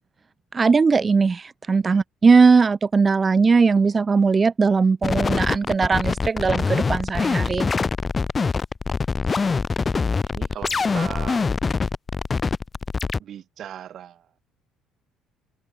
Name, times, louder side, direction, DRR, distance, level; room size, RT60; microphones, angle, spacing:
voice 1, 0.5-7.7, right 4 dB, 20° right, 1.0 m, -19 dB
sound 1, 5.0-13.2, left 4 dB, 20° left, 0.9 m, -24 dB
voice 2, 10.3-11.6 13.2-14.3, right 10 dB, 45° right, 7.3 m, -38 dB
cardioid pair, 150°, 0 cm